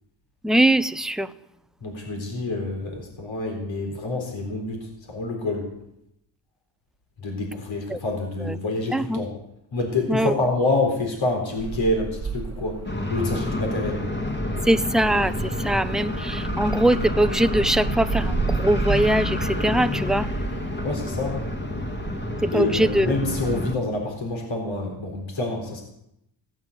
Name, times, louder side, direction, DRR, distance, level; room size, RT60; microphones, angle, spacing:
voice 1, 0.4-1.3 7.9-8.0 8.4-8.6 8.9-9.3 10.1-10.3 14.7-20.3 22.4-23.1, right 1 dB, ahead, 11 dB, 0.6 m, -22 dB
voice 2, 1.8-5.7 7.2-9.3 9.7-12.8 13.1-14.0 20.8-21.4 22.5-25.8, left 2 dB, 70° left, 1 dB, 4.0 m, -27 dB
sound 1, 11.6-22.3, right 5 dB, 30° right, 1.3 m, -34 dB
sound 2, 12.8-23.7, left 1 dB, 20° left, 2.0 m, -29 dB
16.5 x 8.9 x 8.2 m, 0.80 s
cardioid pair, 85°, 48 cm